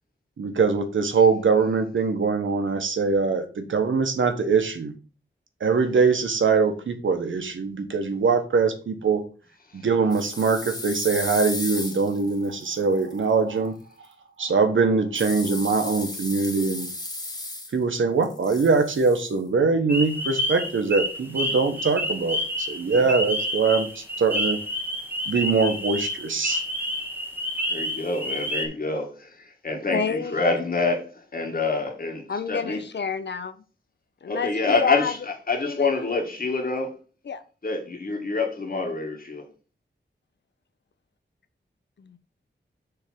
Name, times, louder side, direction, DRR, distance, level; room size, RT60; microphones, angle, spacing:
voice 1, 0.4-4.9 5.6-9.2 9.7-13.7 14.4-16.9 17.7-23.9 24.2-24.6 25.3-26.6, right 4 dB, 85° right, 1.2 m, -22 dB
sound 1, 10.1-13.2 15.1-18.0 18.2-19.3, left 2 dB, 20° left, 1.6 m, -35 dB
sound 2, 19.9-28.7, equal, 10° right, 1.4 m, -29 dB
voice 2, 27.7-32.8 34.3-35.2 35.5-36.9 37.6-39.4, left 3 dB, 50° left, 2.0 m, -27 dB
voice 3, 29.9-30.5 32.3-33.5 34.2-35.1 35.6-35.9 37.3-37.4 42.0-42.2, left 6 dB, 65° left, 0.6 m, -29 dB
6.8 x 3.4 x 6.0 m
wide cardioid pair, 110°, 20 cm